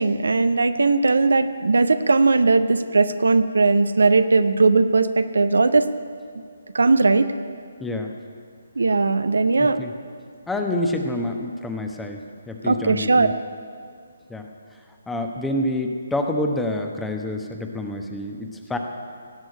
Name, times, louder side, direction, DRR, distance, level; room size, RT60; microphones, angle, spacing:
voice 1, 0.0-5.9 6.7-7.3 8.8-9.8 12.7-13.3, right 3 dB, 65° right, 11 dB, 0.6 m, -18 dB
voice 2, 7.8-8.1 9.6-9.9 10.5-13.3 14.3-14.5 15.1-18.8, left 1 dB, 5° left, 3 dB, 0.9 m, -27 dB
17.0 x 6.2 x 9.6 m, 2.2 s
figure-of-eight pair, 140°, 0 cm